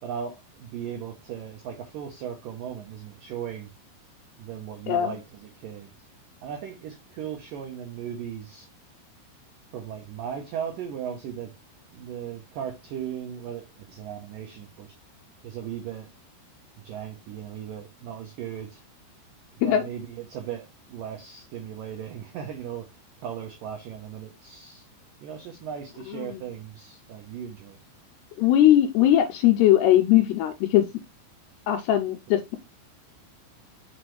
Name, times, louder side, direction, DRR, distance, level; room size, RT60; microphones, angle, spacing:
voice 1, 0.0-3.7 4.4-5.9 6.4-8.7 9.7-11.5 11.9-14.9 15.4-16.1 16.8-18.8 19.7-22.9 23.2-24.9 25.2-27.8, right 8 dB, 85° right, 1.9 m, -37 dB
voice 2, 28.4-30.9 31.7-32.6, left 12 dB, 85° left, 2.5 m, -20 dB
6.0 x 5.9 x 3.1 m
omnidirectional pair, 5.3 m